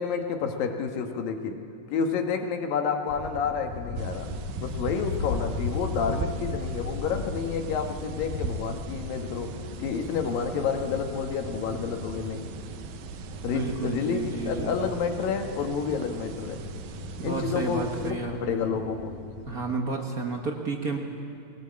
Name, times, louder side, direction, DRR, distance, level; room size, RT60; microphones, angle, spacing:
voice 1, 0.0-1.6 1.9-4.3 4.6-12.4 13.4-16.6 17.2-19.1, left 6 dB, 85° left, 5 dB, 3.3 m, -29 dB
sound 1, 3.1-19.7, left 5 dB, 70° left, 2.6 m, -39 dB
sound 2, 4.0-18.1, right 6 dB, 85° right, 2.8 m, -39 dB
voice 2, 13.5-14.8 17.2-18.7 19.5-21.0, right 3 dB, 55° right, 2 dB, 1.0 m, -31 dB
22.0 x 18.5 x 8.6 m, 2.8 s
omnidirectional pair, 3.9 m